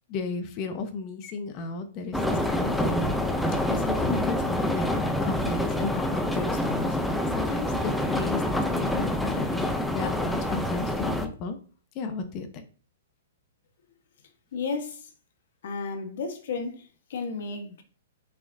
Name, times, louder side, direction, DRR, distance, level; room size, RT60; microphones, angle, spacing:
voice 1, 0.1-3.2 3.7-11.6 11.9-12.6, left 4 dB, 30° left, 1.0 m, -34 dB
sound 1, 2.1-11.3, left 1 dB, 5° left, 0.6 m, -27 dB
voice 2, 14.5-15.1 15.6-17.8, left 4 dB, 60° left, 1.3 m, -33 dB
6.2 x 6.0 x 2.7 m
hypercardioid pair, 150°, 0 cm